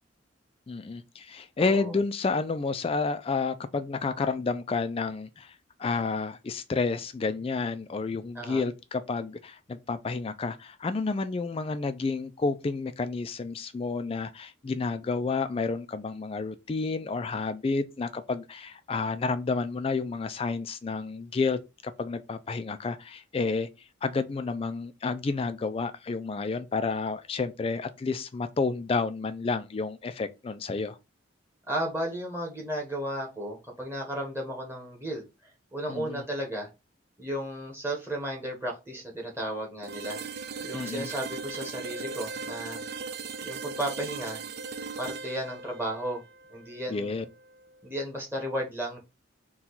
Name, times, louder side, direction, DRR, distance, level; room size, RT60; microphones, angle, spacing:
voice 1, 0.7-5.5 5.8-23.7 24.0-31.0 35.9-36.2 40.7-41.1 46.9-47.2, left 4 dB, 30° left, 0.3 m, -30 dB
voice 2, 1.6-2.0 8.3-8.6 31.7-36.7 37.2-40.2 40.6-42.8 43.4-44.4 45.0-46.2 46.5-47.2 47.8-49.0, right 1 dB, 10° right, 1.0 m, -34 dB
sound 1, 39.8-47.7, right 4 dB, 50° right, 0.4 m, -38 dB
4.3 x 2.3 x 3.8 m
head